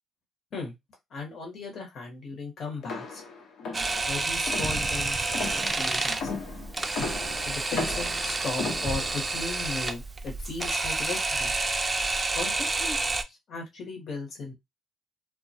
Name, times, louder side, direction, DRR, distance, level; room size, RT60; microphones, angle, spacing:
voice 1, 1.1-3.2 4.1-5.3 5.5-6.3 7.4-11.5 12.3-13.0 13.3-14.5, left 3 dB, 60° left, 0 dB, 1.0 m, -37 dB
sound 1, 2.8-9.3, left 3 dB, 80° left, 0.9 m, -36 dB
Camera, 3.7-13.2, right 3 dB, 25° right, 0.4 m, -29 dB
2.2 x 2.1 x 2.7 m, 0.18 s
cardioid pair, 90°, 0 cm